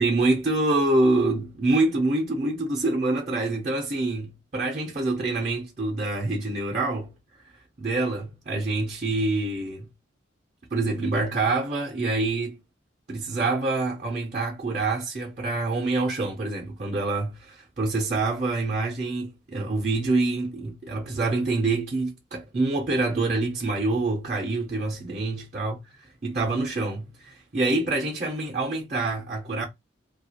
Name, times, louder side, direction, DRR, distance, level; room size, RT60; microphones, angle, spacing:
voice 1, 0.0-7.1 7.8-9.9 10.7-12.6 13.1-29.6, right 2 dB, 40° right, 0.6 m, -26 dB
2.4 x 2.3 x 2.7 m
head